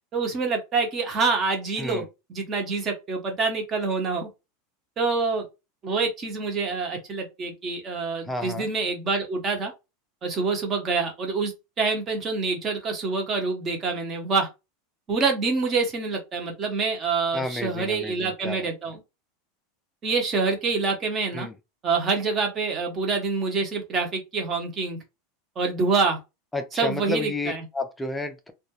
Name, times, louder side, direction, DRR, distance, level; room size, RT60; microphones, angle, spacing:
voice 1, 0.0-2.0 2.3-4.3 5.0-5.4 5.8-9.7 10.2-11.5 11.8-14.5 15.1-19.0 20.0-21.5 21.8-25.0 25.6-26.2 26.8-27.6, right 4 dB, 25° right, 0.8 m, -26 dB
voice 2, 8.3-8.7 17.3-18.7 21.3-21.6 26.5-28.5, left 2 dB, 5° left, 0.4 m, -31 dB
2.3 x 2.0 x 2.7 m
supercardioid pair, 155°, 0 cm